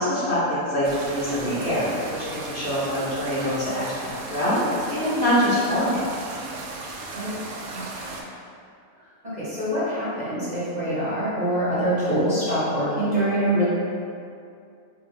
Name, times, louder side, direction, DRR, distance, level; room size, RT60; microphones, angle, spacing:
voice 1, 0.0-6.0, equal, 50° left, -10 dB, 1.3 m, -24 dB
sound 1, 0.8-8.2, right 3 dB, 90° right, 1.0 m, -36 dB
voice 2, 7.1-8.1 9.2-13.7, right 1 dB, 35° right, -11 dB, 0.9 m, -25 dB
4.5 x 2.5 x 3.3 m, 2.4 s
omnidirectional pair, 1.5 m